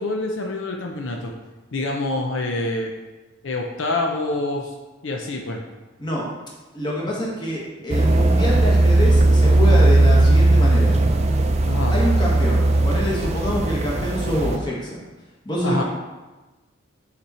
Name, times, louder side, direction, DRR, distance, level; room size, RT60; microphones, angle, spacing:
voice 1, 0.0-1.3 1.7-2.9 3.4-4.8 5.0-5.6 11.6-12.0 15.6-15.8, left 2 dB, 70° left, 1 dB, 0.7 m, -26 dB
voice 2, 6.7-10.9 11.9-15.0 15.4-15.8, equal, 20° left, -4 dB, 1.6 m, -26 dB
sound 1, 7.9-14.6, right 2 dB, 35° right, 0.5 m, -17 dB
8.5 x 4.2 x 4.3 m, 1.2 s
head